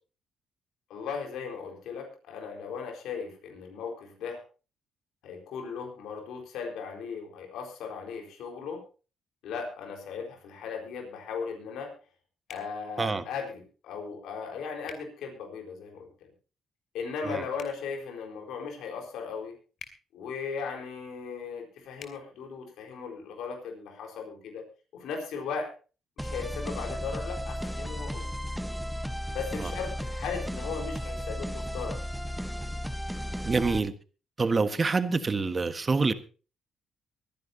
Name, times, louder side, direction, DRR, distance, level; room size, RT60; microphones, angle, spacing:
voice 1, 0.9-4.4 5.2-8.8 9.4-11.9 12.5-16.1 16.9-19.5 20.1-24.6 24.9-25.7 26.2-28.3 29.3-32.0, left 5 dB, 85° left, 2 dB, 4.3 m, -37 dB
sound 1, 12.5-12.7 14.8-15.0 17.5-17.8 19.8-20.0 22.0-22.2, left 6 dB, 65° left, 2.7 m, -45 dB
sound 2, 26.2-33.8, equal, ahead, 1.1 m, -34 dB
voice 2, 33.4-33.9 34.4-36.1, right 4 dB, 30° right, 11 dB, 1.4 m, -26 dB
23.5 x 10.5 x 2.8 m, 0.34 s
cardioid pair, 90°, 0 cm